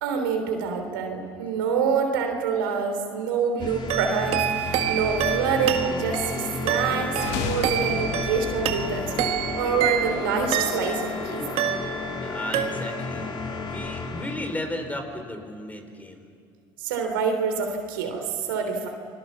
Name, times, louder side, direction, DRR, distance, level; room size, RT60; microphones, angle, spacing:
voice 1, 0.0-11.6 16.8-18.9, right 6 dB, 85° right, 4 dB, 3.3 m, -26 dB
sound 1, 3.6-14.6, left 3 dB, 45° left, 3.4 m, -32 dB
sound 2, 3.9-11.1 11.6-12.3 12.5-13.2, right 10 dB, 65° right, 1.7 m, -28 dB
sound 3, 7.1-11.0, left 9 dB, 75° left, 1.1 m, -36 dB
voice 2, 12.2-16.3, left 1 dB, 15° left, 6 dB, 4.4 m, -35 dB
30.0 x 21.5 x 7.2 m, 2.3 s
hypercardioid pair, 75°, 11 cm